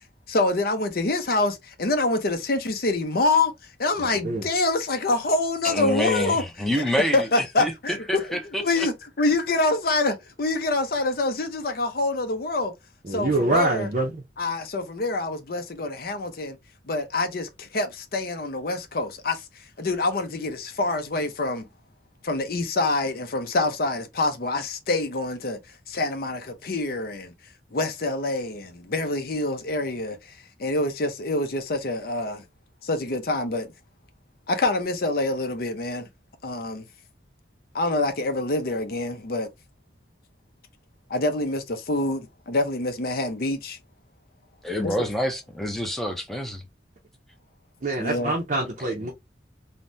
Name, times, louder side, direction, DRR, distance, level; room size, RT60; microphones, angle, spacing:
voice 1, 0.3-3.5 3.8-6.4 6.7-6.8 7.1-12.7 13.1-13.9 14.4-16.6 16.9-19.4 19.8-21.6 22.2-25.6 25.9-27.3 27.7-30.2 30.6-32.4 32.8-33.7 34.5-36.1 36.4-36.8 37.7-39.5 41.1-43.8 44.8-44.9 48.0-48.3, left 2 dB, 55° left, 0.6 m, -26 dB
voice 2, 5.6-8.9 44.6-46.6 49.0-49.1, left 1 dB, ahead, 0.5 m, -27 dB
voice 3, 13.0-14.2 47.8-49.1, right 2 dB, 40° right, 0.5 m, -25 dB
3.3 x 2.1 x 2.6 m
head